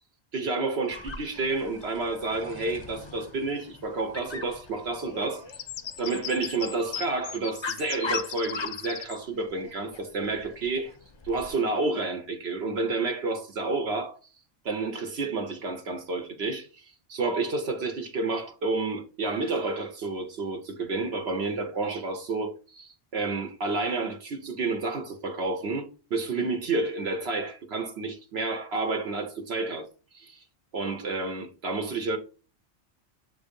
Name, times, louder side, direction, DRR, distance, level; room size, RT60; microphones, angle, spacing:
voice 1, 0.3-5.5 6.0-10.9 11.2-14.2 14.6-29.9 30.1-30.4 30.7-32.2, right 3 dB, 75° right, 1.0 m, -30 dB
Dog, 0.9-11.5, left 3 dB, 30° left, 0.5 m, -41 dB
sound 1, 5.5-9.2, left 9 dB, 70° left, 0.8 m, -37 dB
7.6 x 2.7 x 5.1 m
omnidirectional pair, 1.1 m